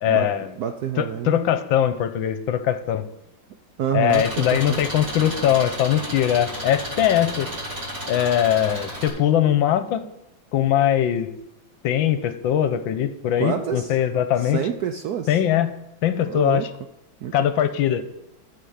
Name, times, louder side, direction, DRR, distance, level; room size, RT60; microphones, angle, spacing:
voice 1, 0.0-0.5 1.0-3.0 3.9-7.5 8.1-10.1 10.5-11.3 11.8-14.6 15.3-15.7 16.0-16.7 17.3-18.0, left 10 dB, 75° left, 11 dB, 1.4 m, -21 dB
voice 2, 0.6-1.4 3.8-4.8 13.4-14.0 14.4-15.4 16.3-16.7 17.2-17.6, right 9 dB, 75° right, 7 dB, 0.9 m, -28 dB
Engine, 4.1-9.1, equal, 55° right, 4.0 m, -33 dB
13.5 x 6.3 x 5.6 m, 0.85 s
omnidirectional pair, 2.2 m